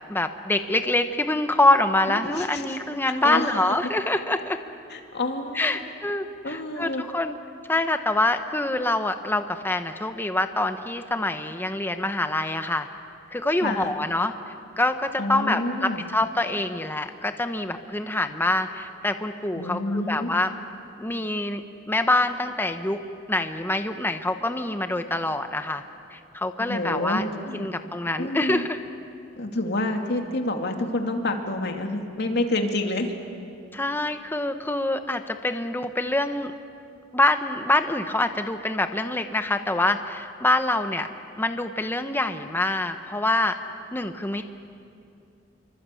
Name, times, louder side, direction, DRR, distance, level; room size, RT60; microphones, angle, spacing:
voice 1, 0.1-4.6 5.5-7.4 7.7-12.9 13.3-20.5 21.0-23.0 23.3-25.8 26.1-27.2 27.5-28.8 33.7-36.5 37.1-41.1 41.4-43.6 43.9-44.4, left 2 dB, 10° left, 8 dB, 0.9 m, -25 dB
voice 2, 2.1-2.8 3.2-3.8 4.9-5.8 6.4-7.0 13.6-13.9 15.2-16.0 19.6-20.3 26.6-27.7 28.2-28.7 29.4-33.1, left 2 dB, 60° left, 4 dB, 2.5 m, -28 dB
26.5 x 24.5 x 8.4 m, 2.5 s
head